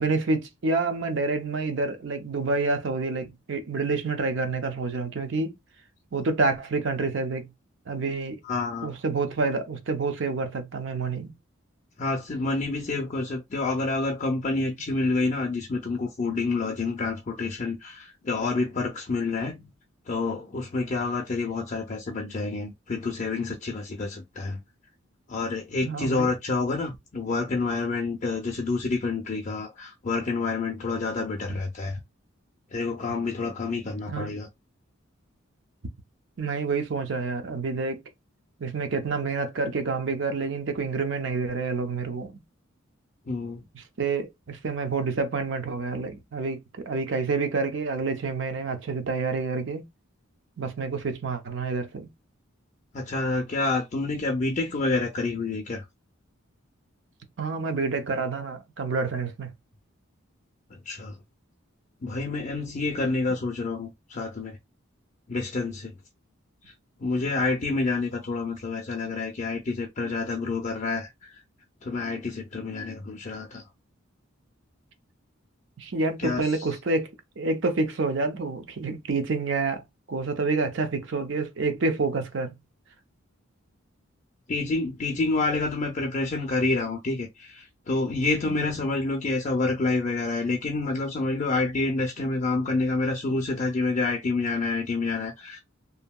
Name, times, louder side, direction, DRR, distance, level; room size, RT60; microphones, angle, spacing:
voice 1, 0.0-5.5 6.1-7.5 7.9-8.4 8.8-11.3 25.8-26.3 34.1-34.4 36.4-38.0 38.6-42.4 43.7-49.8 50.6-52.1 57.4-59.5 75.8-79.8 80.1-82.5 88.5-88.7, right 3 dB, 60° right, 0.6 m, -28 dB
voice 2, 8.4-8.9 12.0-19.7 20.1-24.6 25.3-32.0 32.7-34.5 43.3-43.6 52.9-55.8 60.7-61.2 62.0-64.6 65.3-65.9 66.7-66.8 67.0-71.3 71.8-73.6 76.2-76.7 84.5-95.6, left 3 dB, 35° left, 0.5 m, -28 dB
2.8 x 2.6 x 2.2 m
head